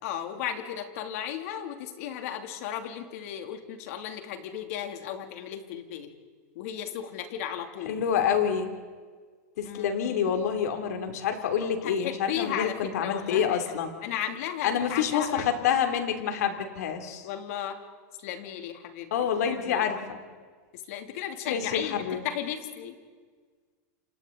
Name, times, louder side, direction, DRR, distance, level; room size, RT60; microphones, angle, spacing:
voice 1, 0.0-6.1 6.5-8.0 9.6-9.9 11.8-13.6 14.0-15.5 17.2-17.8 18.2-19.1 19.6-20.0 20.7-23.0, left 10 dB, 65° left, 5 dB, 2.9 m, -35 dB
voice 2, 7.8-8.7 9.6-13.9 14.6-17.3 19.1-20.2 21.4-22.2, left 8 dB, 80° left, 5 dB, 3.1 m, -27 dB
28.5 x 28.5 x 4.0 m, 1.5 s
supercardioid pair, 145°, 9 cm